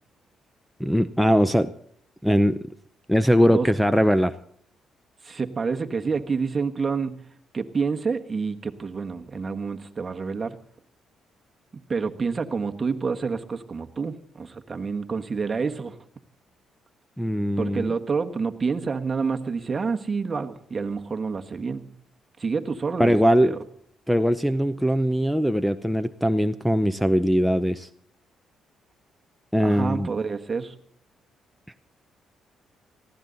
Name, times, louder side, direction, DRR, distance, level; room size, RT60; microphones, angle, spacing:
voice 1, 0.8-1.7 2.2-2.6 3.1-4.3 17.2-17.9 23.0-23.6 24.1-27.9 29.5-30.1, equal, ahead, 8 dB, 0.7 m, -21 dB
voice 2, 5.2-7.2 7.5-10.6 11.9-16.0 17.6-21.9 22.4-23.2 23.4-23.6 29.6-30.7, right 5 dB, 35° right, 6 dB, 1.4 m, -28 dB
19.5 x 15.5 x 4.0 m, 0.65 s
cardioid pair, 90°, 0 cm